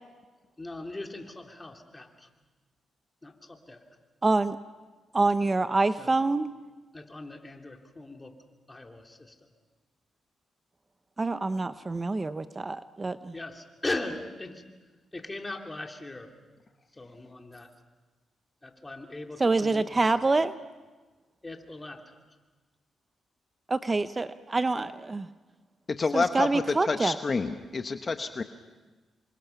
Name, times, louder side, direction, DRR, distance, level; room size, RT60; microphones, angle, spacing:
voice 1, 0.6-2.3 3.2-3.8 6.0-6.1 6.9-8.3 8.7-9.5 13.3-14.6 15.1-16.3 16.9-17.7 18.6-20.3 21.4-22.2, left 2 dB, 20° left, 3 dB, 2.8 m, -39 dB
voice 2, 4.2-4.6 5.1-6.5 11.2-13.3 19.4-20.5 23.7-25.3 26.1-27.2, right 3 dB, 30° right, 12 dB, 0.7 m, -26 dB
voice 3, 25.9-28.4, left 4 dB, 40° left, 7 dB, 1.1 m, -29 dB
28.0 x 24.0 x 5.8 m, 1.3 s
cardioid pair, 80°, 0 cm